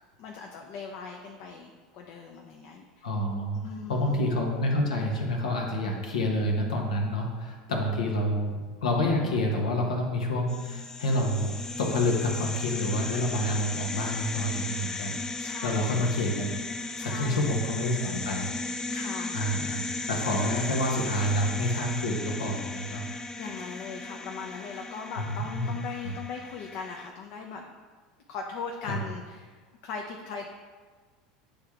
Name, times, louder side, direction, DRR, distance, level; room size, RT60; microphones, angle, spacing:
voice 1, 0.2-3.1 3.5-4.2 15.4-16.1 17.0-17.5 18.9-19.4 23.4-27.6 28.3-30.5, left 5 dB, 60° left, 1 dB, 0.7 m, -39 dB
voice 2, 3.0-3.6 3.9-15.2 15.6-16.5 17.0-18.5 19.3-23.0 25.2-25.7 26.0-26.1 28.9-29.0, left 1 dB, 90° left, 0 dB, 1.2 m, -28 dB
sound 1, 10.5-27.1, left 3 dB, 15° left, 0.4 m, -36 dB
8.8 x 3.4 x 3.6 m, 1.4 s
hypercardioid pair, 95°, 4 cm